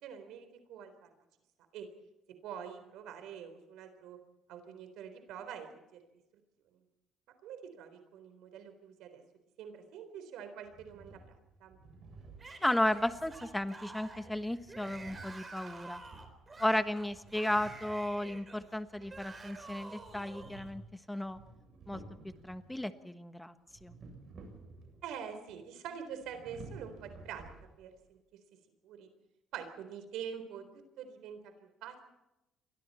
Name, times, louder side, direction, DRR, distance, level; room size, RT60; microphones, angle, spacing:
voice 1, 0.0-1.1 1.7-1.9 2.4-4.2 4.5-6.0 6.7-6.8 7.4-9.2 9.6-11.3 11.6-11.8 25.0-27.4 27.8-28.2 28.8-29.1 29.5-30.6 31.0-32.0, right 8 dB, 75° right, 8 dB, 3.9 m, -45 dB
sound 1, 10.6-22.8 23.7-25.2 25.5-25.6 26.1-28.1, right 3 dB, 45° right, 7.7 m, -54 dB
Yell / Screaming, 12.4-20.7, right 3 dB, 20° right, 4.1 m, -49 dB
voice 2, 12.6-16.0 16.6-21.4 21.9-23.5 23.8-24.0, left 1 dB, 5° left, 9 dB, 1.3 m, -34 dB
29.0 x 23.5 x 4.3 m, 0.90 s
cardioid pair, 160°, 0 cm